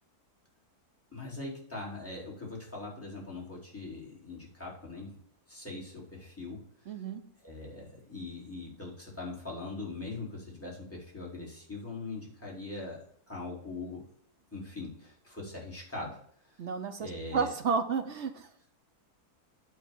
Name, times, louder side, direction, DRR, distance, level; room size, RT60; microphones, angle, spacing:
voice 1, 1.1-5.2 5.5-6.6 7.4-14.0 14.5-16.2 16.5-16.6 17.0-17.5, left 3 dB, 10° left, -3 dB, 3.0 m, -41 dB
voice 2, 6.9-7.2 16.6-18.7, right 5 dB, 55° right, 8 dB, 0.9 m, -32 dB
9.4 x 3.9 x 7.2 m, 0.63 s
omnidirectional pair, 1.7 m